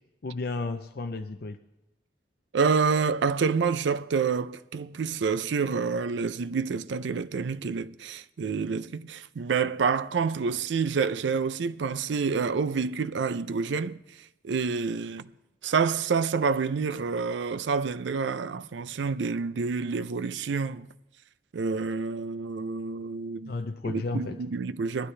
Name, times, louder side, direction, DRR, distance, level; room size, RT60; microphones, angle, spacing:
voice 1, 0.2-1.6 23.5-24.4, left 3 dB, 55° left, 0.5 m, -33 dB
voice 2, 2.5-15.3 15.6-20.9 21.5-23.6 23.8-25.1, right 5 dB, 80° right, 0.4 m, -28 dB
20.0 x 12.5 x 3.3 m
head